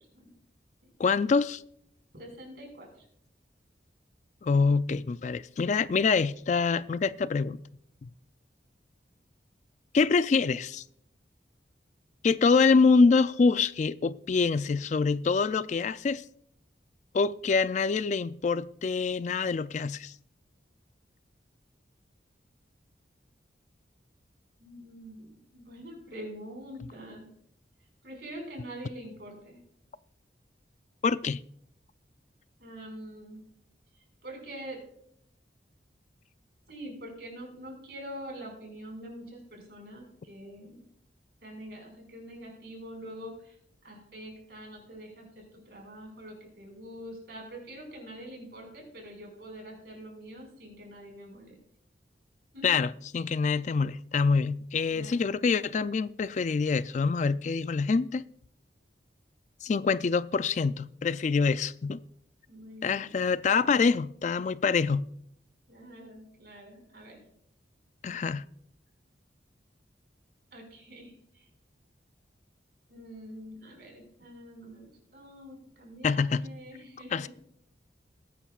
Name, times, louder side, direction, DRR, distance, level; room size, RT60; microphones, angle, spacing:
voice 1, 1.0-1.6 4.4-7.6 8.0-8.1 9.9-10.8 12.2-16.2 17.1-20.1 31.0-31.4 52.6-58.2 59.6-62.0 62.8-65.1 68.0-68.4 76.0-76.5 77.1-77.3, left 4 dB, 40° left, 0.3 m, -25 dB
voice 2, 2.1-3.0 24.6-27.3 28.0-29.6 32.6-33.4 34.2-34.8 36.7-40.9 41.4-43.6 43.8-51.6 52.5-52.9 54.9-55.3 62.5-63.1 65.7-67.2 70.5-71.4 72.9-77.3, equal, 60° right, 5.2 m, -45 dB
20.5 x 10.0 x 2.4 m
head